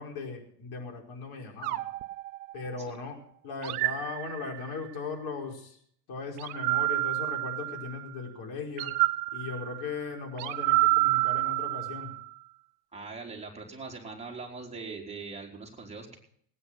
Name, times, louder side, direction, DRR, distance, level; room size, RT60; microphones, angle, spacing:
voice 1, 0.0-1.8 2.5-3.2 3.4-5.8 6.1-8.9 9.3-12.1, left 4 dB, 50° left, 1 dB, 5.2 m, -38 dB
sound 1, 1.6-3.0 3.6-4.9 6.4-8.1 8.8-12.3, right 20 dB, 70° right, 1.1 m, -29 dB
voice 2, 12.9-16.2, right 4 dB, 15° right, 0 dB, 4.4 m, -41 dB
18.5 x 9.6 x 6.0 m, 0.63 s
supercardioid pair, 100°, 46 cm